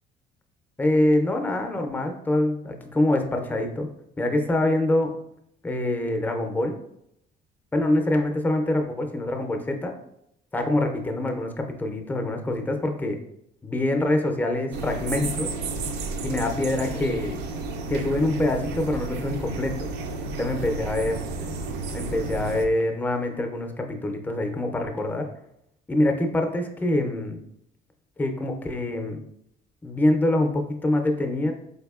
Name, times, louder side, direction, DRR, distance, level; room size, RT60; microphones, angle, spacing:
voice 1, 0.8-3.9 4.2-5.1 5.6-6.8 7.7-9.9 10.5-13.2 13.6-15.5 16.2-17.4 17.9-19.9 20.4-21.1 21.4-21.5 21.9-25.3 25.9-27.4 28.2-29.2 29.8-31.5, left 1 dB, 10° left, 4 dB, 0.4 m, -25 dB
sound 1, 14.7-22.7, right 3 dB, 85° right, 0.5 m, -32 dB
4.0 x 2.6 x 2.3 m, 0.76 s
cardioid pair, 110°, 17 cm